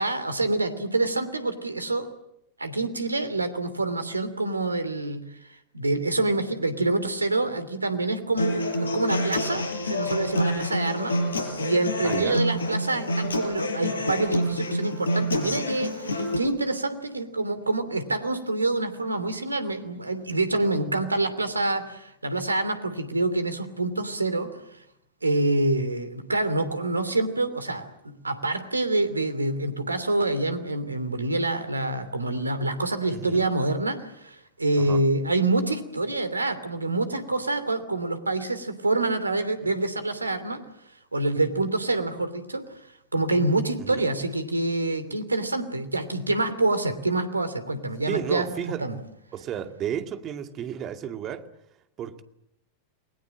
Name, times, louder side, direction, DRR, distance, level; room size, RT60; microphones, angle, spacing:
voice 1, 0.0-2.1 2.6-5.2 5.7-11.2 11.6-24.5 25.2-27.9 28.2-40.6 41.1-42.6 43.1-48.9, right 2 dB, 80° right, 3.0 m, -26 dB
Human voice / Acoustic guitar, 8.4-16.4, left 1 dB, 70° left, 5.1 m, -27 dB
voice 2, 12.0-12.5 33.1-33.5 34.8-35.1 43.8-44.0 48.1-49.0 49.3-51.5 52.0-52.2, right 9 dB, 30° right, 2.3 m, -33 dB
30.0 x 21.5 x 7.7 m
figure-of-eight pair, 90°, 0 cm